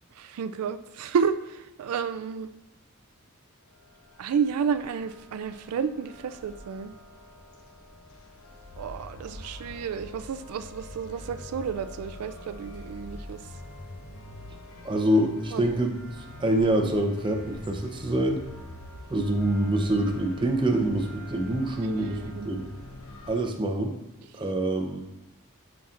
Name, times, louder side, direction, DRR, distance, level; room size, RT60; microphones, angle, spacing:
voice 1, 0.2-2.5 4.2-6.9 8.8-13.4 15.5-15.6 21.8-22.6, right 6 dB, 85° right, 10 dB, 0.4 m, -31 dB
sound 1, 3.9-23.5, left 1 dB, 65° left, 0.9 m, -45 dB
voice 2, 14.8-16.0 16.4-18.4 19.1-22.7 23.3-24.0 24.3-25.0, right 1 dB, 20° right, 3 dB, 0.7 m, -25 dB
11.0 x 5.8 x 2.5 m, 0.93 s
head